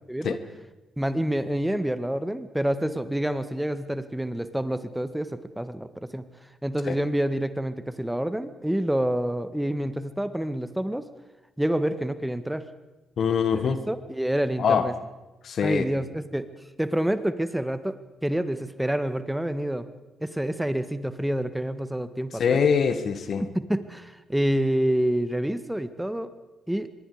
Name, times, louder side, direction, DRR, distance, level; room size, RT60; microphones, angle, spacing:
voice 1, 1.0-6.2 6.6-11.1 11.6-12.7 13.5-14.9 15.6-16.5 16.8-19.9 20.2-22.6 23.4-26.3 26.7-26.9, right 1 dB, 5° right, 12 dB, 1.8 m, -28 dB
voice 2, 13.2-13.8 14.6-14.9 15.4-15.9 22.4-23.4, left 6 dB, 60° left, 11 dB, 1.7 m, -23 dB
24.5 x 22.0 x 5.1 m, 1.1 s
hypercardioid pair, 40°, 0 cm